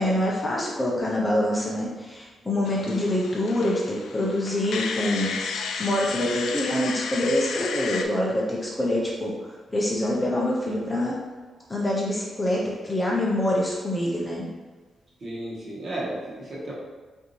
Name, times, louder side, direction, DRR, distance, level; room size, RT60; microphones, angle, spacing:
voice 1, 0.0-9.3 9.7-11.2 11.7-14.5, left 1 dB, 15° left, -3 dB, 0.5 m, -25 dB
sound 1, 2.7-8.1, left 5 dB, 75° left, 0.4 m, -33 dB
voice 2, 15.2-16.7, right 1 dB, 40° right, -5 dB, 1.1 m, -33 dB
5.1 x 2.6 x 3.0 m, 1.4 s
wide cardioid pair, 170°, 0 cm